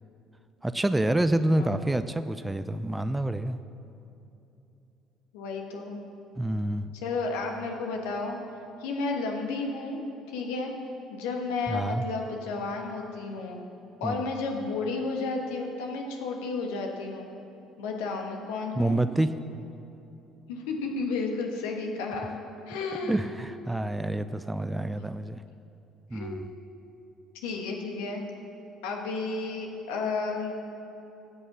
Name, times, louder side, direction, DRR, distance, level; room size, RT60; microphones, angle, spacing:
voice 1, 0.6-3.6 6.4-6.9 11.7-12.0 14.0-14.3 18.8-19.3 23.0-25.4 26.1-26.5, right 1 dB, 10° right, 11 dB, 0.5 m, -28 dB
voice 2, 5.3-6.0 7.0-8.4 8.8-10.0 10.3-10.7 11.1-13.6 14.0-17.3 17.8-19.0 20.5-22.3 22.7-23.2 26.1-26.4 27.3-28.2 28.8-30.5, left 3 dB, 70° left, 2 dB, 1.4 m, -32 dB
14.5 x 5.4 x 7.3 m, 2.8 s
figure-of-eight pair, 55°, 0 cm